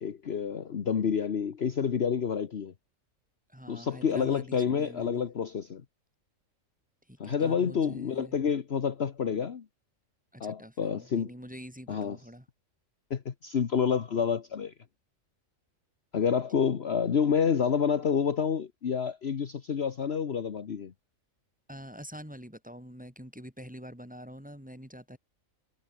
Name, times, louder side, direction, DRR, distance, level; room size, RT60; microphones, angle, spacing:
voice 1, 0.0-2.7 3.7-5.8 7.2-9.6 10.4-11.3 11.9-12.2 13.1-14.7 16.1-20.9, left 7 dB, 50° left, 1.3 m, -28 dB
voice 2, 3.5-5.3 7.1-8.4 10.3-12.5 21.7-25.2, equal, 5° right, 4.2 m, -46 dB
omnidirectional pair, 1.4 m